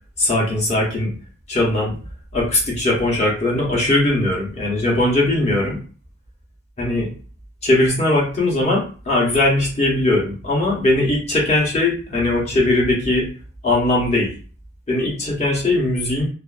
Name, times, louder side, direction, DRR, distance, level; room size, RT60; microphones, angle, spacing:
voice 1, 0.2-1.1 1.5-2.0 2.3-5.8 6.8-7.1 7.6-13.3 13.6-14.3 14.9-16.3, left 2 dB, 35° left, -3 dB, 0.9 m, -19 dB
2.5 x 2.2 x 2.4 m, 0.38 s
head